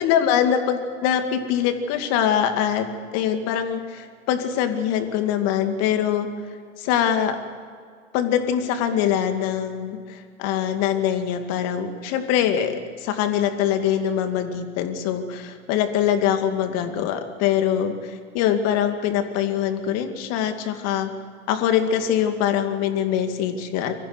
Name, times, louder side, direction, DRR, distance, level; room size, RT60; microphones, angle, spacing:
voice 1, 0.0-6.3 6.8-7.4 8.1-21.1 21.5-23.9, left 9 dB, 40° left, 7 dB, 2.3 m, -23 dB
23.5 x 15.0 x 9.6 m, 2.1 s
figure-of-eight pair, 105°, 39 cm